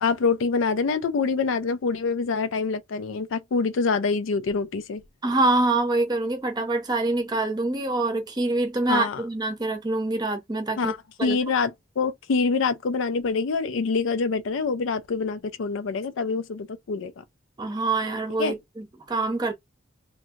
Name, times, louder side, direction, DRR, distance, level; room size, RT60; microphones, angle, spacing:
voice 1, 0.0-5.0 8.9-9.2 10.8-11.7 12.0-17.2 18.4-18.5, left 4 dB, 70° left, 0.4 m, -25 dB
voice 2, 5.2-10.9 11.2-11.4 17.6-19.5, right 2 dB, 20° right, 0.7 m, -25 dB
2.7 x 2.7 x 2.4 m
head